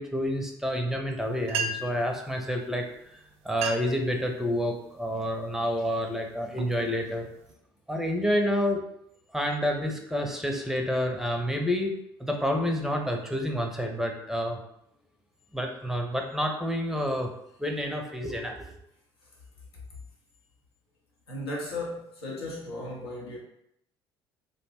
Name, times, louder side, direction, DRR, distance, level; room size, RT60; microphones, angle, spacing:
voice 1, 0.0-2.8 3.1-7.3 7.9-8.8 9.3-14.6 15.5-17.3 17.6-18.6, equal, 5° right, 2 dB, 0.5 m, -29 dB
sound 1, 1.2-1.3 1.4-2.1 2.9-3.1 3.4-4.0 4.5-4.9 5.5-5.8 6.3-7.5, right 3 dB, 55° right, 0.4 m, -34 dB
voice 2, 21.3-23.4, left 1 dB, 90° left, -4 dB, 0.7 m, -35 dB
2.5 x 2.1 x 3.4 m, 0.75 s
hypercardioid pair, 60°, 13 cm